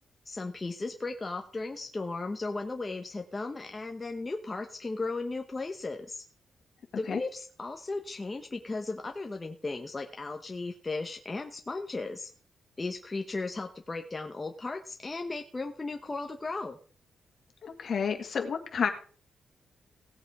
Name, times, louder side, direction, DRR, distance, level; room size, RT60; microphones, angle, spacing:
voice 1, 0.3-6.2 7.0-12.3 12.8-16.8, left 3 dB, 20° left, 4 dB, 0.9 m, -36 dB
voice 2, 17.6-18.9, left 6 dB, 55° left, 5 dB, 2.0 m, -30 dB
17.0 x 8.4 x 3.6 m, 0.42 s
wide cardioid pair, 135°, 0 cm